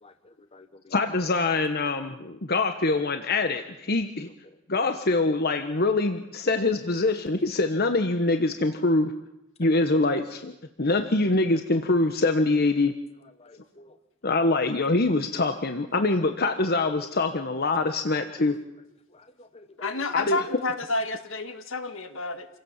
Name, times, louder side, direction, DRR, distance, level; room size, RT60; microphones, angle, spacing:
voice 1, 0.0-1.0 13.4-14.0 19.1-19.7, left 2 dB, 30° left, 9 dB, 1.1 m, -53 dB
voice 2, 0.9-4.3 4.7-9.1 9.6-10.5 10.8-12.9 14.2-18.6 20.1-20.4, left 2 dB, 50° left, 7 dB, 1.2 m, -24 dB
voice 3, 19.8-22.5, left 3 dB, 80° left, 8 dB, 2.0 m, -30 dB
28.0 x 17.0 x 7.4 m, 0.88 s
head